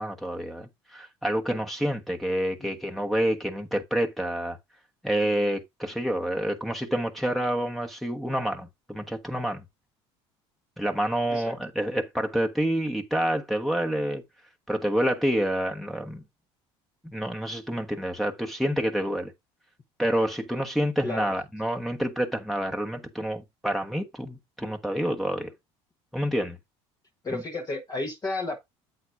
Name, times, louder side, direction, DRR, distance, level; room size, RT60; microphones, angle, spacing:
voice 1, 0.0-4.6 5.0-9.6 10.8-14.2 14.7-16.2 17.0-19.3 20.0-25.5 26.1-26.6 27.3-27.4, equal, ahead, 1.2 m, -28 dB
voice 2, 27.2-28.6, left 2 dB, 30° left, 1.3 m, -32 dB
7.9 x 7.7 x 2.6 m
supercardioid pair, 80°, 14 cm